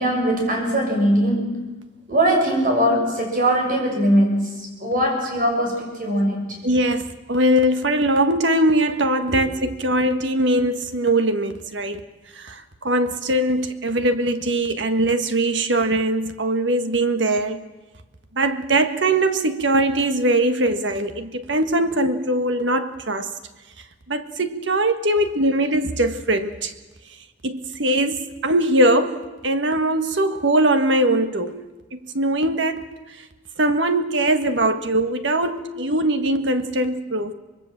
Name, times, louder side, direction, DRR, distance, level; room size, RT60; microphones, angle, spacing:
voice 1, 0.0-1.6 2.1-6.6 9.3-9.4, equal, 45° right, 7.0 m, -21 dB
voice 2, 6.6-7.0 7.3-12.0 12.3-17.6 18.3-23.3 24.1-26.7 27.4-31.6 31.9-32.9 33.6-37.3, right 1 dB, 65° right, 1.6 m, -21 dB
25.5 x 21.0 x 7.4 m
head